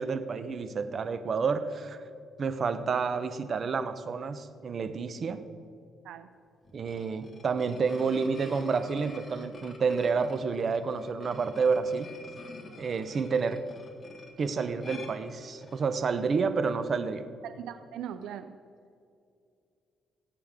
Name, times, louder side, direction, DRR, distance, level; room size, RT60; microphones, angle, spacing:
voice 1, 0.0-2.0 2.4-5.4 6.7-12.1 12.8-13.6 14.4-17.3, right 5 dB, 50° right, 10 dB, 0.9 m, -29 dB
sound 1, 6.6-16.0, left 3 dB, 35° left, 1.9 m, -48 dB
voice 2, 17.4-18.6, right 9 dB, 85° right, 10 dB, 0.5 m, -40 dB
19.5 x 8.9 x 3.7 m, 2.4 s
cardioid pair, 90°, 0 cm